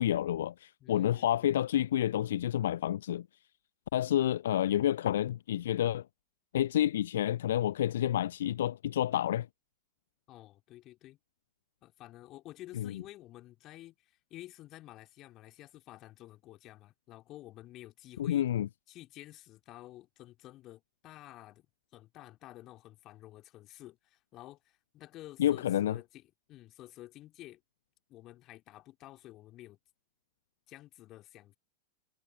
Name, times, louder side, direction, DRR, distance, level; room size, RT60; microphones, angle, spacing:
voice 1, 0.0-3.3 3.9-6.0 6.5-9.5 12.8-12.9 18.2-18.7 25.4-26.0, left 11 dB, 60° left, 0.6 m, -29 dB
voice 2, 0.8-1.5 10.3-11.2 11.8-18.5 18.9-21.7 21.9-27.6 28.1-29.8 30.7-31.6, left 15 dB, 35° left, 2.3 m, -51 dB
figure-of-eight pair, 90°, 0 cm